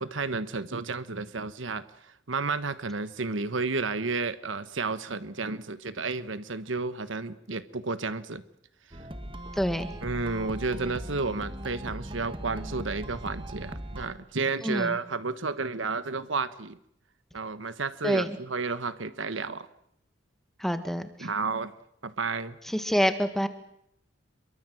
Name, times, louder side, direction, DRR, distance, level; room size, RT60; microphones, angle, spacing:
voice 1, 0.0-8.4 10.0-16.8 17.3-19.7 21.2-21.7 22.0-22.6, right 4 dB, 75° right, 13 dB, 1.3 m, -32 dB
sound 1, 8.9-14.1, right 1 dB, 25° right, 1.9 m, -39 dB
voice 2, 9.5-9.9 14.6-15.0 18.0-18.3 20.6-21.3 22.6-23.5, equal, ahead, 9 dB, 1.7 m, -27 dB
27.5 x 23.0 x 7.8 m, 0.74 s
head